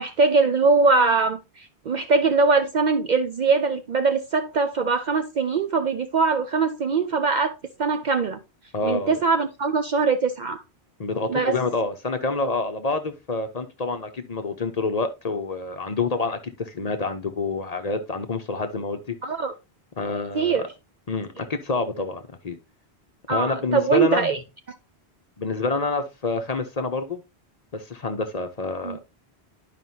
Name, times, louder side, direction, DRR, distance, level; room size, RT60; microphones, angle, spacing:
voice 1, 0.0-8.4 8.8-10.6 11.3-11.6 19.2-19.5 20.3-20.7 23.3-24.4 28.8-29.0, right 4 dB, 55° right, 0.5 m, -22 dB
voice 2, 8.7-9.2 11.0-19.2 20.0-20.6 21.1-22.6 23.3-24.4 25.4-27.2 27.7-29.0, left 3 dB, 40° left, 0.7 m, -27 dB
11.0 x 5.0 x 2.7 m
omnidirectional pair, 1.1 m